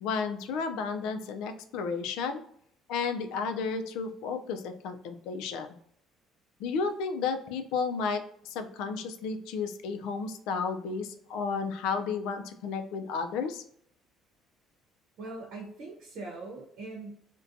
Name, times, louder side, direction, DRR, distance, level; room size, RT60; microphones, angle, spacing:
voice 1, 0.0-2.4 2.9-5.7 6.6-13.6, left 5 dB, 85° left, 6 dB, 0.4 m, -32 dB
voice 2, 15.2-17.1, right 3 dB, 70° right, -2 dB, 0.8 m, -41 dB
2.6 x 2.1 x 2.5 m, 0.65 s
cardioid pair, 155°, 0 cm